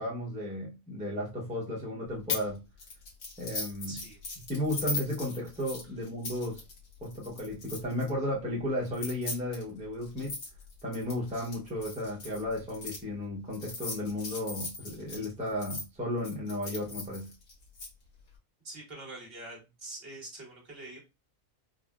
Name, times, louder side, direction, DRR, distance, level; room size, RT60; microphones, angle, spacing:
voice 1, 0.0-2.6 3.4-4.0 4.5-6.6 7.0-10.4 10.8-17.3, left 1 dB, 10° right, 0.4 m, -34 dB
sound 1, 2.3-2.5 2.8-8.1 8.9-13.0 13.5-15.8 16.2-17.9, left 3 dB, 85° left, 1.5 m, -39 dB
voice 2, 3.9-4.2 18.6-21.0, right 2 dB, 50° right, 1.3 m, -44 dB
3.8 x 2.0 x 2.3 m
omnidirectional pair, 1.4 m